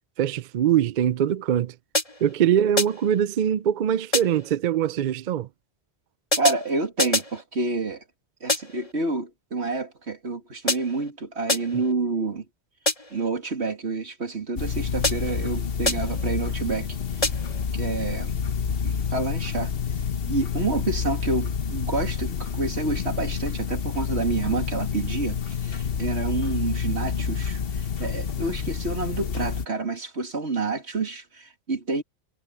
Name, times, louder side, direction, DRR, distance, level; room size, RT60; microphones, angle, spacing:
voice 1, 0.2-1.7 2.2-5.5, right 10 dB, 60° right, 0.5 m, -22 dB
sound 1, 1.9-2.4 2.8-3.2 4.1-4.6 6.3-7.4 8.5-8.9 10.7-11.1 11.5-11.9 12.9-13.3 15.0-15.5 15.9-16.3 17.2-17.6, left 1 dB, 30° left, 2.6 m, -27 dB
voice 2, 6.4-8.0 8.4-12.4 13.1-16.9 17.2-17.3 17.7-18.4 18.8-19.7 20.3-32.0, right 3 dB, 80° right, 2.9 m, -28 dB
sound 2, 14.6-29.7, left 6 dB, 60° left, 1.1 m, -28 dB
omnidirectional pair, 1.1 m